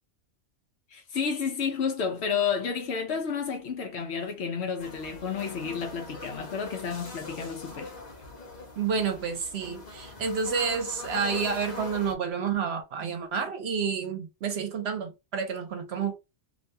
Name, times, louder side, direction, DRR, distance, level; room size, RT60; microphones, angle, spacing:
voice 1, 0.9-7.9, left 6 dB, 70° left, 0.8 m, -31 dB
sound 1, 4.8-12.1, left 3 dB, 40° left, 1.1 m, -42 dB
voice 2, 8.8-16.1, right 6 dB, 65° right, 0.9 m, -29 dB
3.4 x 2.6 x 2.6 m
omnidirectional pair, 1.2 m